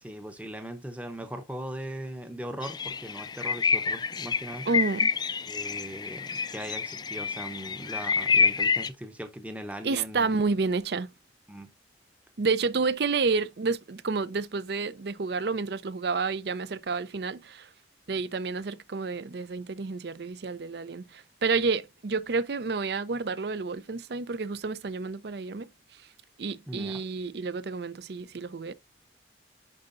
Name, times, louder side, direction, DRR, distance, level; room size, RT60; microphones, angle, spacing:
voice 1, 0.0-4.7 5.4-10.3 11.5-11.7 26.7-27.0, right 1 dB, 5° right, 0.7 m, -39 dB
sound 1, 2.6-8.9, left 5 dB, 20° left, 0.3 m, -28 dB
voice 2, 4.7-5.1 9.8-11.1 12.4-17.7 18.1-25.7 26.4-28.7, right 4 dB, 60° right, 0.5 m, -30 dB
11.0 x 3.9 x 2.5 m
head